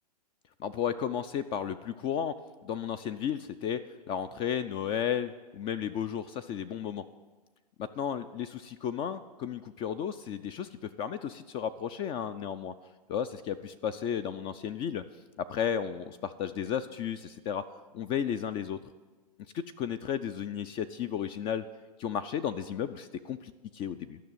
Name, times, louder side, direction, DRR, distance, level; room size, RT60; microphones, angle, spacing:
voice 1, 0.6-2.3 2.6-3.8 4.1-7.0 7.8-12.7 13.1-15.0 15.4-17.6 17.9-18.8 19.5-21.6 22.0-24.2, left 8 dB, 25° left, 12 dB, 0.4 m, -33 dB
12.0 x 6.1 x 8.9 m, 1.3 s
hypercardioid pair, 120°, 21 cm